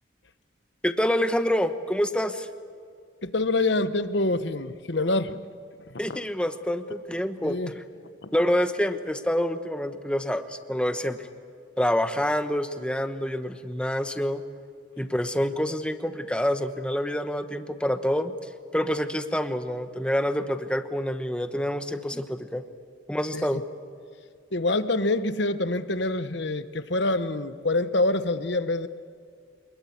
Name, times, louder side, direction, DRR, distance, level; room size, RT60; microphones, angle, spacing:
voice 1, 0.8-2.5 6.0-7.6 8.3-11.3 11.8-14.4 15.0-18.3 18.7-22.6 23.1-23.6, equal, 5° left, 8 dB, 1.1 m, -27 dB
voice 2, 3.2-5.4 5.9-6.0 7.4-7.7 8.2-8.3 23.3-23.6 24.5-28.9, left 2 dB, 60° left, 12 dB, 1.1 m, -26 dB
26.5 x 21.0 x 8.5 m, 2.3 s
head